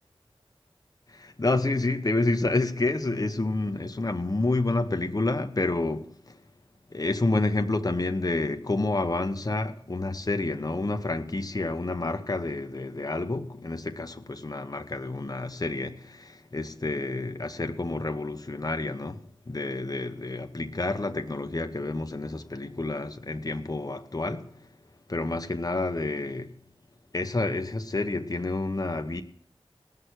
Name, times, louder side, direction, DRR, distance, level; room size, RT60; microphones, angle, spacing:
voice 1, 1.1-6.4 6.9-24.7 25.1-26.6 27.1-29.2, left 2 dB, 40° left, 1.1 m, -29 dB
19.0 x 6.6 x 9.5 m
wide cardioid pair, 60°, 10 cm